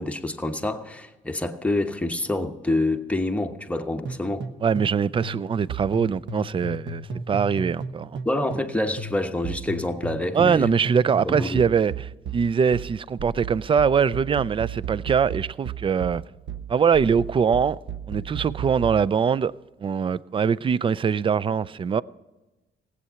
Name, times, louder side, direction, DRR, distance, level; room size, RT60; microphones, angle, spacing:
voice 1, 0.0-4.5 8.2-10.7 11.2-11.6, left 1 dB, 5° left, 1.0 m, -27 dB
sound 1, 4.0-8.7 9.0-19.1, right 5 dB, 65° right, 1.2 m, -34 dB
voice 2, 4.6-8.2 10.3-16.2 16.7-17.8 18.1-19.5 19.8-22.0, right 6 dB, 25° right, 0.3 m, -22 dB
17.0 x 8.3 x 5.7 m
cardioid pair, 90°, 20 cm